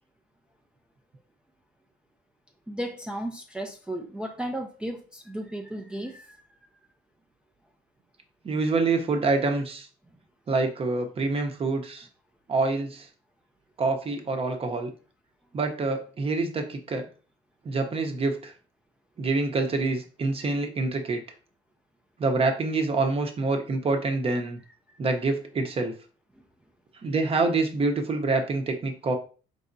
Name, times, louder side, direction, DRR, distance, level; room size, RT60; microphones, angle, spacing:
voice 1, 2.7-6.4, right 1 dB, 5° right, 0.5 m, -34 dB
voice 2, 8.4-9.9 10.5-12.1 12.5-13.1 13.8-14.9 15.5-17.0 17.6-18.5 19.2-21.2 22.2-24.6 25.0-25.9 27.0-29.1, right 3 dB, 35° right, 0.8 m, -26 dB
4.3 x 3.4 x 2.6 m
cardioid pair, 110°, 17 cm